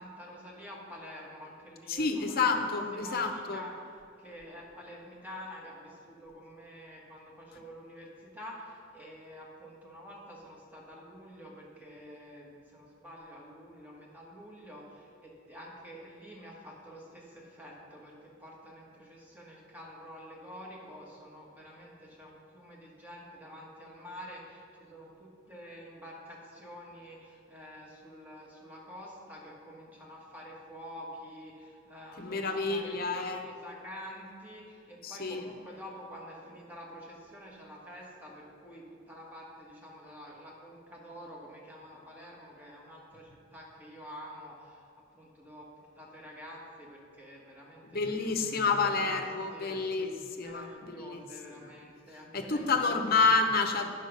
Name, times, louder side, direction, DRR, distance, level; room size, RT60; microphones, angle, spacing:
voice 1, 0.0-3.7 4.2-44.9 45.1-49.8 50.4-52.8, equal, 10° right, -3 dB, 1.6 m, -48 dB
voice 2, 1.9-3.6 32.2-33.5 35.0-35.5 47.8-51.3 52.3-53.9, left 4 dB, 50° left, 5 dB, 0.8 m, -29 dB
9.2 x 6.0 x 5.2 m, 2.5 s
head